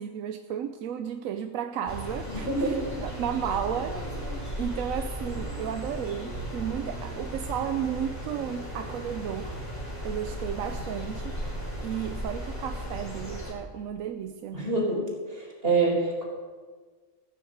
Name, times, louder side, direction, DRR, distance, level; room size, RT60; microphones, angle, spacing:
voice 1, 0.0-9.6 10.0-11.4 11.8-14.6, right 9 dB, 85° right, 8 dB, 1.0 m, -33 dB
sound 1, 1.9-13.5, equal, 10° left, 3.5 m, -36 dB
voice 2, 2.3-2.8 14.5-15.0 15.3-16.2, right 3 dB, 45° right, -3 dB, 4.5 m, -26 dB
15.0 x 7.2 x 7.8 m, 1.5 s
omnidirectional pair, 1.4 m